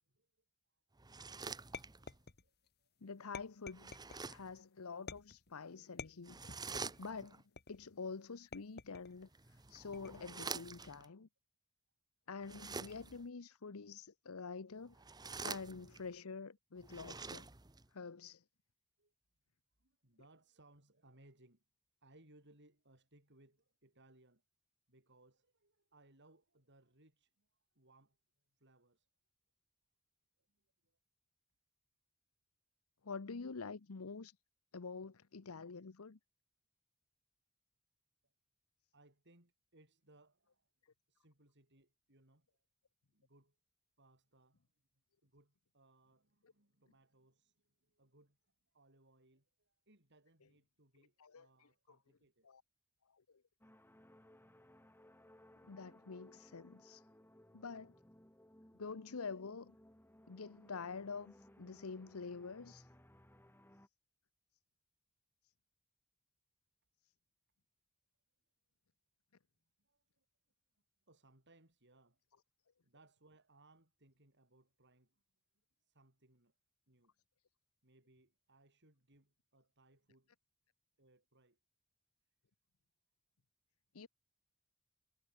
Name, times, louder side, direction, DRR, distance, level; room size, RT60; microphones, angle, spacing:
sound 1, 1.0-2.2 3.7-4.6 6.2-7.4 9.2-11.1 12.4-13.3 14.9-16.1 16.8-17.9, right 4 dB, 20° right, 0.9 m, -47 dB
sound 2, 1.7-2.7 3.3-4.3 5.1-5.5 6.0-7.0 7.6-8.0 8.5-9.2 9.9-10.4, left 4 dB, 50° left, 2.1 m, -50 dB
voice 1, 1.9-2.9 19.0-19.1 19.8-21.6 22.0-24.4 24.9-27.5 27.8-28.2 28.6-29.1 30.8-31.0 38.9-40.7 41.1-42.5 43.1-43.5 44.0-44.7 45.2-48.4 48.7-52.5 69.8-70.3 71.1-72.2 72.8-75.2 75.8-76.5 76.9-77.1 77.8-80.3 81.0-81.6, right 2 dB, 55° right, 7.1 m, -68 dB
voice 2, 3.0-3.9 4.3-6.4 7.0-7.4 7.7-11.3 12.3-15.0 15.4-17.5 17.9-18.4 33.0-34.4 34.7-36.2 51.0-52.0 52.4-52.6 55.7-57.1 57.5-57.9 58.8-59.7 60.3-62.9 83.9-84.1, left 4 dB, 80° left, 0.8 m, -47 dB
sound 3, 53.6-63.9, left 1 dB, 10° left, 4.8 m, -63 dB
head